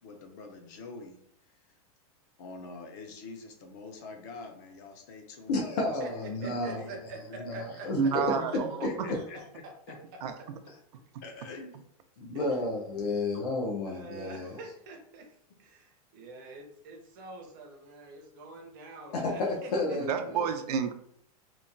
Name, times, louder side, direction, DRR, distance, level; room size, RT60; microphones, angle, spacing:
voice 1, 0.0-1.2 1.5-1.6 2.4-7.6 8.1-10.0 10.2-10.3 11.2-11.8 19.8-20.4, left 3 dB, 30° left, 4 dB, 0.3 m, -45 dB
voice 2, 5.5-6.8 7.4-8.3 9.1-9.2 12.2-14.6 19.1-20.4, left 2 dB, 85° left, -2 dB, 0.7 m, -31 dB
voice 3, 6.0-7.2 7.5-8.1 8.8-8.9 9.6-9.7 12.3-12.5 13.8-20.0, right 3 dB, 35° right, 2 dB, 0.5 m, -46 dB
voice 4, 8.0-9.1 10.2-10.4 20.1-20.9, right 7 dB, 90° right, 7 dB, 0.4 m, -29 dB
3.0 x 2.1 x 2.5 m, 0.68 s
supercardioid pair, 175°, 20 cm